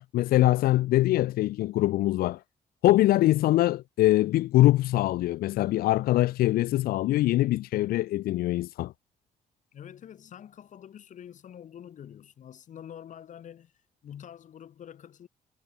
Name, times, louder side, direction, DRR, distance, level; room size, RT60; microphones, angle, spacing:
voice 1, 0.0-2.4 2.8-8.9, left 16 dB, 85° left, 0.4 m, -23 dB
voice 2, 9.7-13.7 14.0-15.3, left 9 dB, 55° left, 7.9 m, -45 dB
cardioid pair, 150°, 15 cm